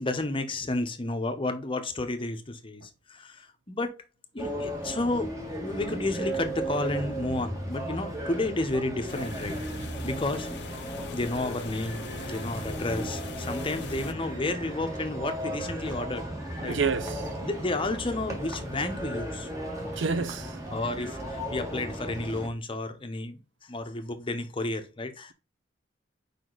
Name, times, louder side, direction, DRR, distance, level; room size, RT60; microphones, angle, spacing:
voice 1, 0.0-3.9 4.3-5.3 5.6-9.6 10.0-10.5 11.1-16.3 16.6-16.8 17.4-19.5 20.7-23.4 23.7-25.3, left 2 dB, 30° left, 0.8 m, -31 dB
sound 1, 4.4-22.5, right 1 dB, 15° right, 1.4 m, -35 dB
sound 2, 9.1-14.1, left 5 dB, 60° left, 0.5 m, -42 dB
voice 2, 16.6-17.2 20.0-20.5, right 5 dB, 80° right, 0.5 m, -28 dB
5.0 x 4.9 x 3.8 m
head